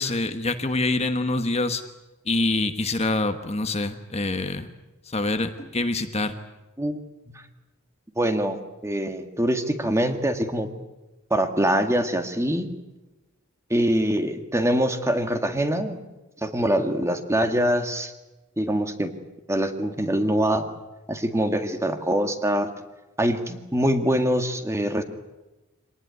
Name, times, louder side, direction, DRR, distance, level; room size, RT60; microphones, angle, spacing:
voice 1, 0.0-1.8 2.3-4.7 5.1-6.4, left 2 dB, 30° left, 8 dB, 1.2 m, -25 dB
voice 2, 8.2-10.7 11.3-12.7 13.7-16.0 16.4-18.1 18.6-19.1 19.5-20.7 21.1-22.7 23.2-25.0, right 1 dB, 15° right, 6 dB, 1.8 m, -24 dB
25.0 x 19.0 x 9.5 m, 1.1 s
head